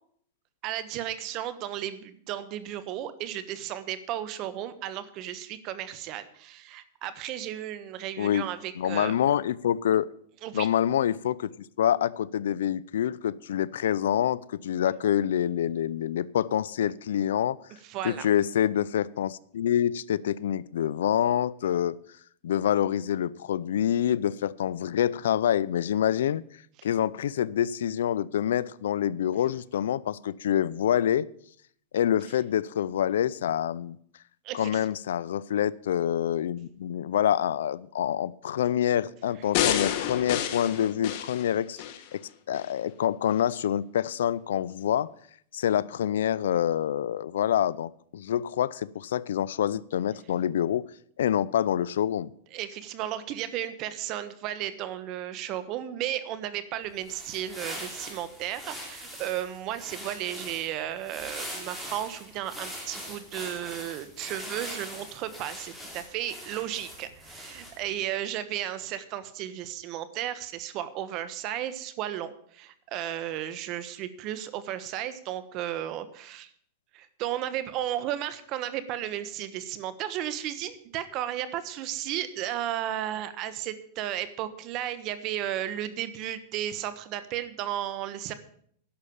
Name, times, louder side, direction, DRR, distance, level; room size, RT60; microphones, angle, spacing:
voice 1, 0.6-9.2 10.4-10.7 17.8-18.3 34.4-34.7 52.5-76.5 76.9-88.3, right 12 dB, 40° right, 13 dB, 1.2 m, -34 dB
voice 2, 8.8-10.1 10.5-11.5 11.8-17.6 18.0-22.0 22.4-26.4 26.8-31.3 31.9-34.0 34.5-41.8 42.1-45.1 45.5-50.9 51.2-52.3, left 10 dB, 85° left, 21 dB, 0.5 m, -26 dB
sound 1, 39.5-42.0 42.5-42.6, left 11 dB, 50° left, 1.4 m, -29 dB
sound 2, 56.9-67.9, equal, 5° right, 3.2 m, -42 dB
11.5 x 6.5 x 8.7 m, 0.64 s
supercardioid pair, 145°, 0 cm